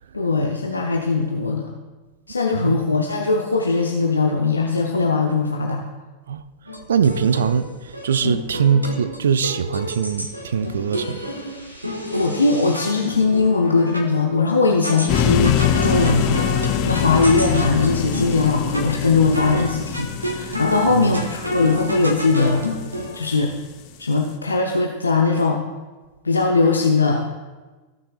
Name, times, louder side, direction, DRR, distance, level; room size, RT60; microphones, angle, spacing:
voice 1, 0.1-1.7 2.3-5.8 12.1-16.6 16.8-22.6 23.1-23.5 24.0-25.6 26.2-27.2, left 3 dB, 80° left, 0.7 m, -20 dB
sound 1, 6.7-14.1 14.8-18.9 19.3-19.6 19.9-23.2, equal, 85° right, 1.4 m, -30 dB
voice 2, 6.9-7.7 8.0-11.2 21.0-21.2, right 7 dB, 65° right, 0.4 m, -21 dB
sound 2, 15.1-23.1, left 9 dB, 45° left, 0.8 m, -24 dB
15.5 x 6.6 x 2.4 m
figure-of-eight pair, 90°, 0 cm